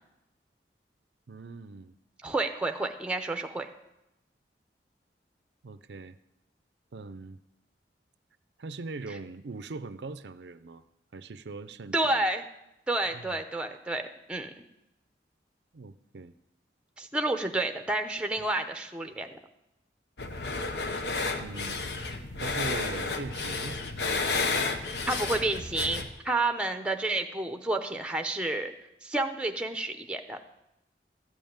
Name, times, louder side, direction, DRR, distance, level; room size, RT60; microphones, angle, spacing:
voice 1, 1.3-1.9 5.6-6.2 6.9-7.4 8.6-10.8 11.1-12.2 13.1-13.4 15.7-16.3 18.4-18.5 21.4-21.8 22.4-23.8, right 3 dB, 75° right, 13 dB, 0.5 m, -41 dB
voice 2, 2.2-3.7 11.9-12.4 12.9-14.0 14.3-14.5 17.0-19.4 25.1-28.7 29.0-30.4, right 2 dB, 5° right, 6 dB, 0.7 m, -30 dB
sound 1, 20.2-26.1, left 3 dB, 70° left, 1.0 m, -31 dB
13.0 x 5.5 x 8.8 m, 0.89 s
head